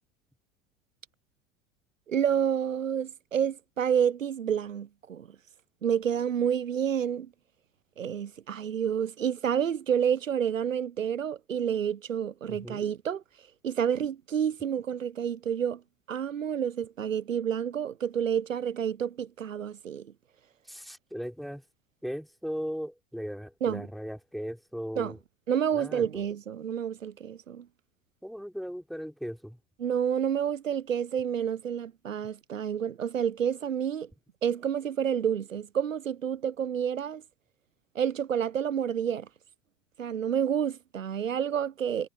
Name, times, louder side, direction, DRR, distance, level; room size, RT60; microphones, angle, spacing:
voice 1, 2.1-5.3 5.8-7.3 8.0-13.2 13.6-15.8 16.1-20.1 23.6-23.9 25.0-25.1 25.5-27.7 29.8-34.1 34.4-37.2 37.9-39.3 40.0-42.1, right 8 dB, 90° right, 0.6 m, -29 dB
voice 2, 12.5-12.8 20.6-21.6 22.0-25.2 25.7-26.1 28.2-29.6, equal, ahead, 2.9 m, -37 dB
figure-of-eight pair, 75°, 38 cm